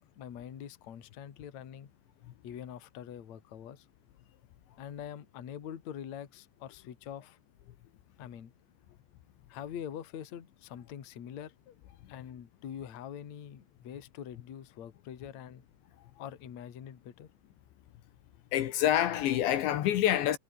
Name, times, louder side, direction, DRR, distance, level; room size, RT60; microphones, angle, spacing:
voice 1, 0.0-1.9 2.4-3.9 4.8-7.4 8.2-8.5 9.5-11.7 12.1-15.6 16.2-17.3, left 9 dB, 45° left, 2.8 m, -44 dB
voice 2, 18.5-20.4, left 12 dB, 75° left, 3.6 m, -27 dB
omnidirectional pair, 5.5 m